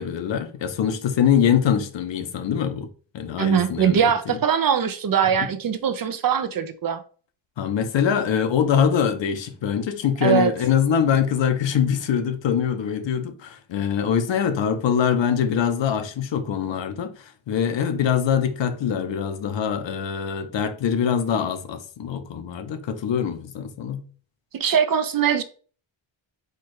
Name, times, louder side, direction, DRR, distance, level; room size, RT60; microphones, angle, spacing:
voice 1, 0.0-2.9 3.1-4.4 7.6-17.1 17.5-24.0, left 8 dB, 65° left, 0.7 m, -23 dB
voice 2, 3.4-7.0 10.2-10.5 24.5-25.4, right 8 dB, 45° right, 0.5 m, -21 dB
4.5 x 2.3 x 4.6 m
wide cardioid pair, 155°, 48 cm